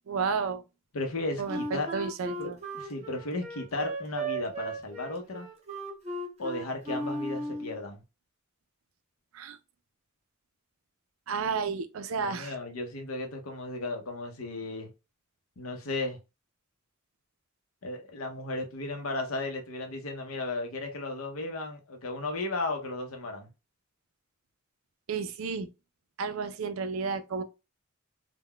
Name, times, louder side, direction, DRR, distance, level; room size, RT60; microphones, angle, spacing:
voice 1, 0.1-0.6 1.4-2.6 9.3-9.6 11.3-12.5 25.1-25.7 26.2-27.4, right 5 dB, 70° right, 0.4 m, -32 dB
voice 2, 0.9-1.9 2.4-5.5 6.4-8.0 12.2-14.9 15.6-16.2 17.8-23.5, left 2 dB, 80° left, 0.7 m, -35 dB
Wind instrument woodwind instrument, 1.5-7.8, right 2 dB, 30° right, 0.7 m, -36 dB
3.7 x 2.1 x 2.2 m
head